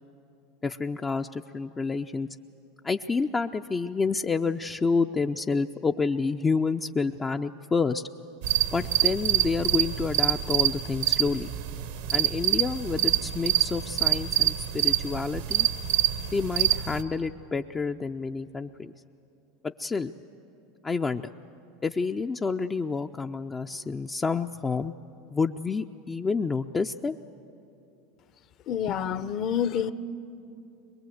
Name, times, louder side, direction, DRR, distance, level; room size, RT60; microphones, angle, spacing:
voice 1, 0.6-2.3 2.8-8.0 8.7-11.5 12.1-15.7 16.3-18.9 19.6-20.1 20.8-21.3 21.8-24.9 25.3-27.2 28.9-29.0, left 4 dB, 20° left, 5 dB, 0.4 m, -29 dB
sound 1, 8.4-17.0, right 13 dB, 75° right, 1.0 m, -26 dB
voice 2, 28.7-29.9, left 8 dB, 45° left, 13 dB, 0.8 m, -28 dB
22.0 x 22.0 x 7.9 m, 2.7 s
supercardioid pair, 110°, 0 cm